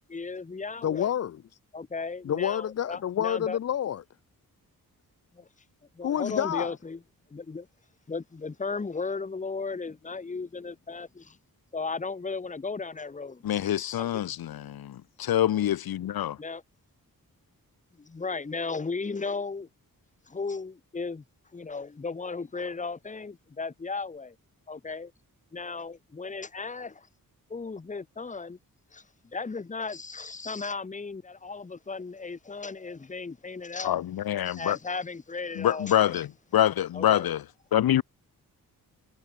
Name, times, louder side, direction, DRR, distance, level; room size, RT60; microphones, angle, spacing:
voice 1, 0.1-1.1 1.7-3.6 5.3-5.5 5.9-7.0 7.3-7.7 8.1-11.4 11.7-14.1 16.4-16.6 18.0-19.7 20.3-21.2 21.5-24.3 24.7-25.1 25.5-27.1 27.5-28.6 28.9-34.0 34.4-36.2 36.9-37.3, left 4 dB, 20° left, 1.0 m, -36 dB
voice 2, 0.8-1.4 2.2-4.0 6.0-6.8, left 10 dB, 45° left, 0.4 m, -28 dB
voice 3, 13.4-16.4 33.8-34.8 35.6-36.3 36.5-37.4 37.7-38.0, left 11 dB, 85° left, 0.7 m, -25 dB
wide cardioid pair, 145°, 35 cm